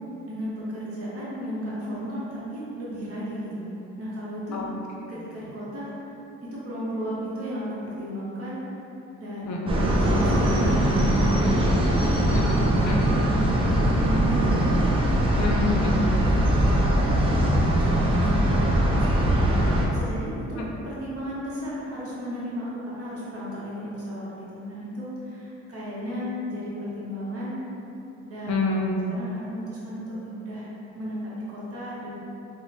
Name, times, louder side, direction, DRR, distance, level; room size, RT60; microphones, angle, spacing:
voice 1, 0.2-4.7 5.1-5.9 6.4-8.6 9.2-9.5 9.7-12.3 12.6-12.8 13.1-14.7 15.3-15.4 16.3-19.5 19.9-20.6 20.8-27.6 28.2-28.5 29.1-32.1, equal, 50° right, -8 dB, 0.9 m, -34 dB
voice 2, 9.4-9.8 12.3-12.6 12.8-13.1 15.4-16.0 20.6-20.7 28.5-29.1, left 3 dB, 65° left, -1 dB, 0.5 m, -28 dB
sound 1, 9.7-19.9, right 1 dB, 20° right, 0.4 m, -21 dB
2.6 x 2.0 x 3.1 m, 2.9 s
cardioid pair, 90°, 30 cm